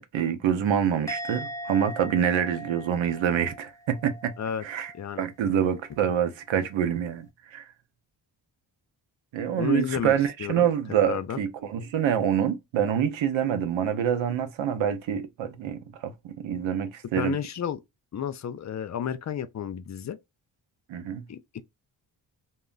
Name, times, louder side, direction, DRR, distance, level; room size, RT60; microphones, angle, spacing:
voice 1, 0.0-4.4 4.6-4.9 5.2-7.7 9.3-17.4 20.9-21.2, right 9 dB, 75° right, 0.7 m, -26 dB
Musical instrument, 1.1-4.5 4.7-5.2, equal, 5° left, 0.7 m, -39 dB
voice 2, 4.9-5.3 9.6-10.1 10.4-10.7 11.0-11.4 17.1-17.8 18.1-20.2 21.3-21.6, left 8 dB, 40° left, 0.4 m, -31 dB
2.2 x 2.0 x 3.7 m
cardioid pair, 55°, 47 cm